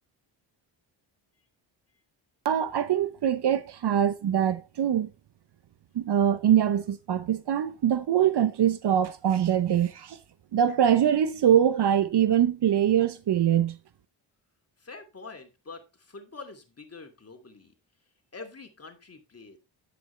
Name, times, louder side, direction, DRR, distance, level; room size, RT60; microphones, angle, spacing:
voice 1, 2.4-5.1 5.9-10.2 10.5-13.8, right 9 dB, 55° right, 0.9 m, -23 dB
voice 2, 14.8-17.7 18.3-19.6, left 4 dB, 30° left, 2.6 m, -45 dB
9.8 x 7.7 x 3.3 m
cardioid pair, 70°, 48 cm